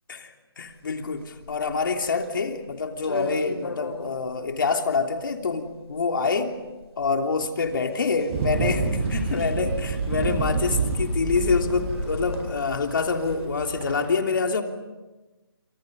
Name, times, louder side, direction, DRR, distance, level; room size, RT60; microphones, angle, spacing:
voice 1, 0.6-6.5 7.0-14.6, left 4 dB, 55° left, 4 dB, 3.2 m, -26 dB
sound 1, 0.7-13.5, left 2 dB, 90° left, 4.9 m, -37 dB
sound 2, 8.3-14.1, right 4 dB, 25° right, 5.4 m, -28 dB
29.0 x 27.0 x 5.4 m, 1.1 s
hypercardioid pair, 170°, 13 cm